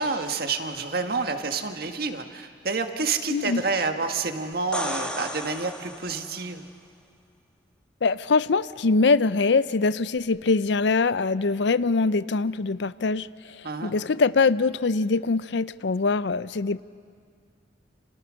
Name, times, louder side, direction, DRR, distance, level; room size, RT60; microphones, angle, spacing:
voice 1, 0.0-6.7 13.6-13.9, right 4 dB, 55° right, 6 dB, 1.7 m, -28 dB
voice 2, 3.3-3.6 8.0-16.8, left 4 dB, 75° left, 17 dB, 0.6 m, -23 dB
sound 1, 4.5-6.5 10.2-10.3, left 1 dB, 5° left, 1.6 m, -34 dB
30.0 x 27.5 x 6.4 m, 2.2 s
head